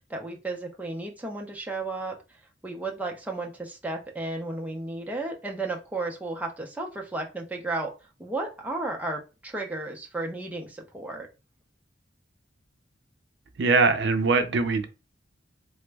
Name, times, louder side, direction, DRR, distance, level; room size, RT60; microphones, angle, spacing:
voice 1, 0.1-7.9 8.2-11.3, right 2 dB, 10° right, 0.4 m, -33 dB
voice 2, 13.6-14.9, right 4 dB, 65° right, 0.5 m, -22 dB
3.2 x 2.0 x 3.3 m
head